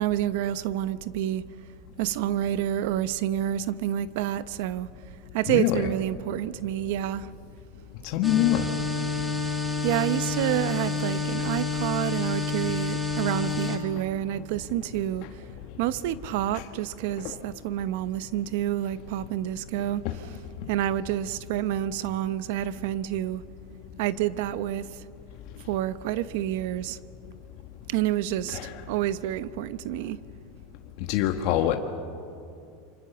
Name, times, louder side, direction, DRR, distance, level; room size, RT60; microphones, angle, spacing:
voice 1, 0.0-1.4 2.0-4.9 5.3-7.3 9.8-15.3 15.8-20.0 20.7-23.4 24.0-25.0 25.7-27.0 27.9-28.6 28.9-30.2, right 12 dB, 65° right, 0.9 m, -28 dB
voice 2, 5.5-5.9 8.0-8.7 16.5-16.6 17.2-17.3 20.0-20.1 28.5-28.7 31.1-31.8, left 13 dB, 55° left, 1.4 m, -24 dB
sound 1, 8.2-13.8, left 4 dB, 5° right, 3.1 m, -29 dB
28.0 x 25.5 x 7.0 m
supercardioid pair, 135°, 0 cm